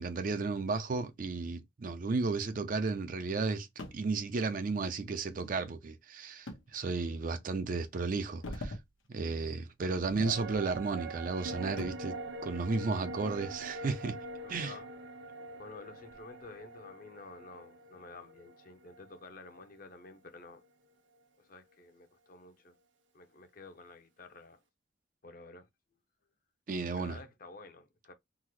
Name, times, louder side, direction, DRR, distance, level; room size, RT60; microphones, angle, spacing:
voice 1, 0.0-3.7 3.9-8.8 9.1-12.2 12.4-14.2 14.5-14.7 26.7-27.2, right 4 dB, 45° right, 0.4 m, -33 dB
sound 1, 3.8-4.1 6.5-6.7 7.2-7.3 8.1-8.9 9.2-9.4 9.9-10.9 11.2-12.1 13.7-14.8 15.3-15.4 16.1-16.5, left 1 dB, 90° left, 0.8 m, -44 dB
sound 2, 10.2-19.8 20.1-20.2, right 2 dB, 70° right, 0.8 m, -44 dB
voice 2, 14.4-14.9 15.6-20.6 21.4-22.8 23.1-24.6 25.2-25.7 26.9-28.1, left 3 dB, 45° left, 0.6 m, -51 dB
3.7 x 2.0 x 2.9 m
head